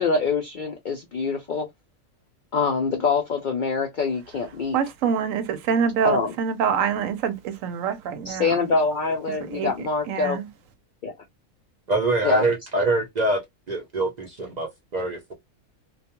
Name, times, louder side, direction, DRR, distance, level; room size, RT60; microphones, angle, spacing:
voice 1, 0.0-1.7 2.5-4.8 6.0-6.3 8.3-10.4 11.0-11.1 12.2-12.4, left 4 dB, 75° left, 0.4 m, -24 dB
voice 2, 4.7-8.7 9.5-9.7 10.1-10.5, right 7 dB, 75° right, 0.9 m, -25 dB
voice 3, 11.9-13.4 13.7-15.3, right 2 dB, 55° right, 0.4 m, -24 dB
2.3 x 2.2 x 2.8 m
omnidirectional pair, 1.4 m